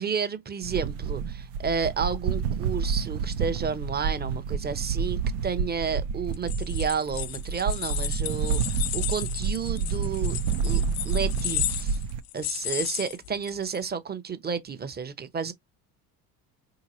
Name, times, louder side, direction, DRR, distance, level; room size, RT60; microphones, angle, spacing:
voice 1, 0.0-10.4 10.6-12.0 12.3-15.5, right 6 dB, 20° right, 0.8 m, -31 dB
sound 1, 0.6-12.2, right 6 dB, 65° right, 0.6 m, -29 dB
sound 2, 6.3-13.8, left 15 dB, 50° left, 0.5 m, -34 dB
4.5 x 2.9 x 2.7 m
hypercardioid pair, 65°, 45 cm